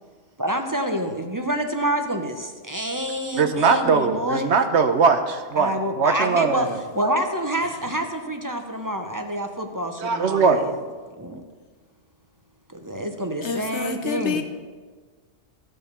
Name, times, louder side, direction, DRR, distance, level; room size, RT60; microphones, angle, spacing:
voice 1, 0.4-4.5 5.6-6.7 6.9-10.8 11.2-11.4 12.7-14.4, right 1 dB, 20° right, 0.7 m, -27 dB
voice 2, 3.4-6.8 10.0-10.7, right 5 dB, 70° right, 1.1 m, -20 dB
voice 3, 13.4-14.4, left 6 dB, 70° left, 1.2 m, -28 dB
14.0 x 5.4 x 6.7 m
omnidirectional pair, 1.2 m